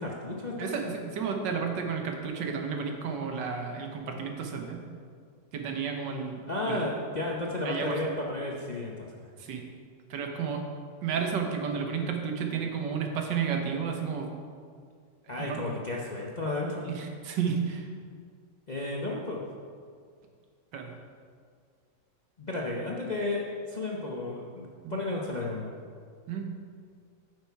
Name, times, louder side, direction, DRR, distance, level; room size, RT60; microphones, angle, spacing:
voice 1, 0.0-0.7 6.5-9.3 15.3-16.9 18.7-19.5 22.4-25.7, left 2 dB, 45° left, -3 dB, 0.5 m, -33 dB
voice 2, 0.6-4.8 5.5-6.9 7.6-8.1 9.4-9.6 10.1-10.6 11.0-14.3 15.4-15.6 16.9-17.9 20.7-20.9 24.8-25.0 26.3-26.5, right 6 dB, 90° right, 3 dB, 1.7 m, -32 dB
9.6 x 6.6 x 4.6 m, 2.1 s
omnidirectional pair, 1.9 m